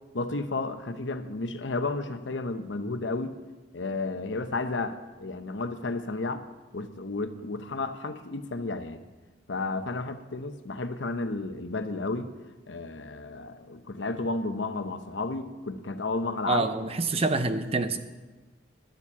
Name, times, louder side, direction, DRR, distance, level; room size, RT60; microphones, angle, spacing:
voice 1, 0.1-3.4 3.7-6.5 6.7-9.0 9.5-12.3 12.7-16.7, left 3 dB, 75° left, 9 dB, 0.9 m, -32 dB
voice 2, 16.5-18.0, right 3 dB, 35° right, 9 dB, 0.7 m, -26 dB
11.5 x 7.3 x 8.3 m, 1.2 s
head